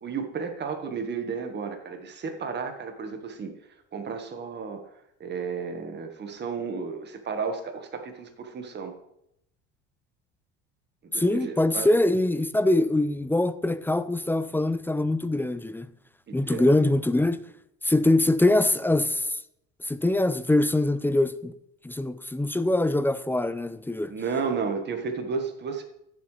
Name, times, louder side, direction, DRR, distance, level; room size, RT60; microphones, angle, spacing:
voice 1, 0.0-3.5 3.9-4.8 5.2-8.9 11.1-12.0 16.5-16.6 24.1-25.8, right 5 dB, 35° right, 1.6 m, -32 dB
voice 2, 11.1-15.9 16.3-17.4 17.8-19.4 19.8-21.5 21.8-24.1, left 1 dB, 5° left, 0.6 m, -23 dB
15.0 x 7.5 x 3.3 m
supercardioid pair, 95°, 30 cm